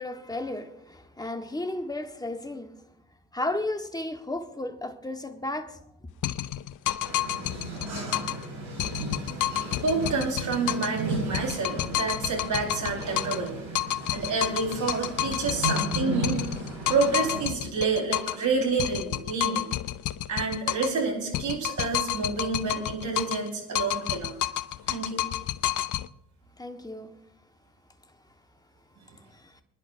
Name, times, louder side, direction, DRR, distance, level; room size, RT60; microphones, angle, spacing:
voice 1, 0.0-2.8 3.3-5.8 26.6-27.2 29.3-29.6, left 2 dB, 10° left, 1.3 m, -34 dB
sound 1, 6.2-8.5 8.8-11.0 11.3-13.5 13.7-18.5 18.8-21.0 21.3-23.5 23.7-26.1, left 14 dB, 50° left, 0.6 m, -30 dB
sound 2, 7.0-17.4, right 2 dB, 80° right, 4.7 m, -35 dB
voice 2, 9.8-13.6 14.1-16.4 16.9-19.7 20.3-24.3 24.9-25.2, right 4 dB, 45° right, 4.6 m, -28 dB
26.0 x 10.5 x 2.6 m
hypercardioid pair, 55°, 39 cm